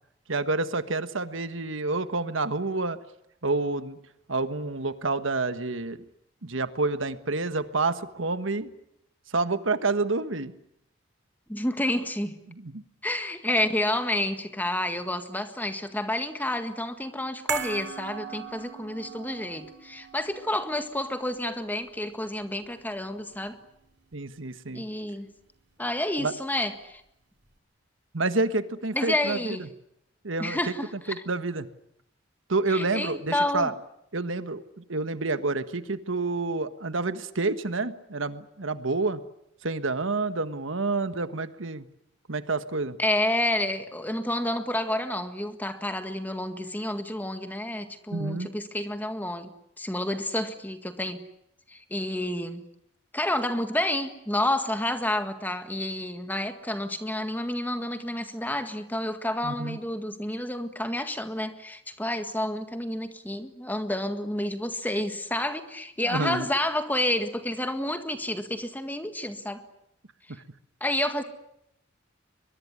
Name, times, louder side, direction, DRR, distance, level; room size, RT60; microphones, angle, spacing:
voice 1, 0.3-3.0 3.4-4.0 4.3-6.0 6.4-8.7 9.3-10.5 12.5-12.8 24.1-24.8 26.2-26.3 28.1-29.7 30.2-31.7 32.5-33.7 34.1-39.2 39.6-41.9 42.3-43.0 48.1-48.5 59.4-59.8 66.1-66.5, right 3 dB, 75° right, 1.5 m, -28 dB
voice 2, 11.5-12.4 13.0-23.6 24.7-25.3 25.8-27.0 28.9-29.7 30.4-31.2 32.7-33.7 43.0-49.5 49.8-51.2 51.7-52.6 53.1-69.6 70.8-71.2, left 1 dB, 10° left, 1.8 m, -29 dB
sound 1, 17.5-23.9 24.2-24.3, right 8 dB, 55° right, 3.7 m, -40 dB
23.0 x 23.0 x 9.7 m
head